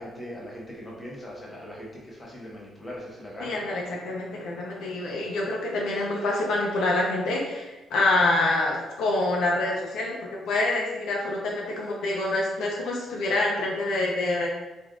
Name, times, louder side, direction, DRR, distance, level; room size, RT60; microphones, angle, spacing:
voice 1, 0.0-3.6, equal, 20° left, -4 dB, 0.9 m, -40 dB
voice 2, 3.4-14.5, left 2 dB, 80° left, -2 dB, 0.5 m, -26 dB
3.2 x 2.5 x 2.4 m, 1.1 s
cardioid pair, 90°, 0 cm